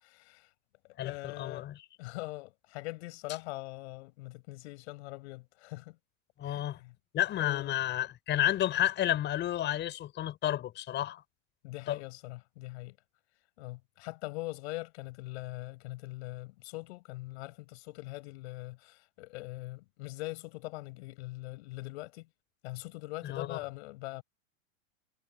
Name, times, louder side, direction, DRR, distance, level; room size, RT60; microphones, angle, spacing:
voice 1, 0.1-0.5 1.0-1.7 2.0-6.0 6.4-6.9 7.4-7.8 11.6-13.0 13.6-22.3 22.6-24.2, left 22 dB, 55° left, 6.2 m, -42 dB
voice 2, 1.0-1.8 6.4-6.8 7.1-11.2 11.9-12.0 23.2-23.6, left 12 dB, 25° left, 6.9 m, -31 dB
supercardioid pair, 145°, 40 cm